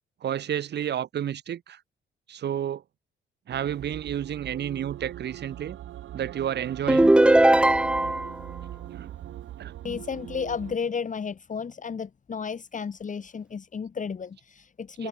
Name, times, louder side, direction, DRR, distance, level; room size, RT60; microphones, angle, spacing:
voice 1, 0.2-1.8 2.3-2.8 3.5-5.8 6.1-7.1 8.9-9.1 9.6-9.7 15.0-15.1, right 10 dB, 60° right, 1.4 m, -31 dB
sound 1, 3.5-10.8, right 13 dB, 80° right, 5.6 m, -41 dB
sound 2, 6.9-8.4, right 1 dB, 5° right, 0.4 m, -18 dB
voice 2, 9.8-15.1, left 6 dB, 40° left, 3.1 m, -33 dB
cardioid pair, 90°, 20 cm